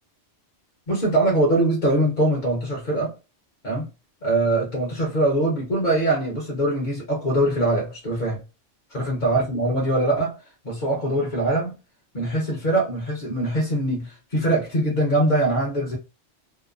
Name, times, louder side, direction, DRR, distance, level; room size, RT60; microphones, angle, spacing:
voice 1, 0.9-3.1 3.6-3.9 4.2-8.4 8.9-10.4 10.6-11.7 12.1-16.0, right 1 dB, 45° left, 1.0 m, -22 dB
2.9 x 2.0 x 2.3 m
omnidirectional pair, 1.2 m